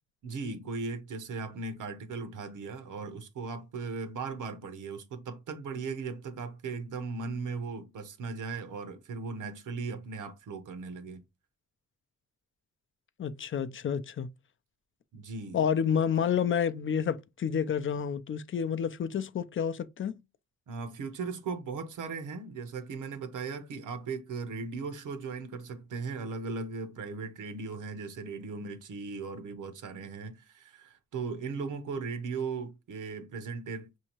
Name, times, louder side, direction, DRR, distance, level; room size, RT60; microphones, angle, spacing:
voice 1, 0.2-11.2 15.1-15.6 20.7-34.0, right 4 dB, 80° right, 0.8 m, -38 dB
voice 2, 13.2-14.3 15.5-20.2, left 7 dB, 40° left, 0.4 m, -29 dB
6.3 x 2.8 x 2.9 m
cardioid pair, 100°, 31 cm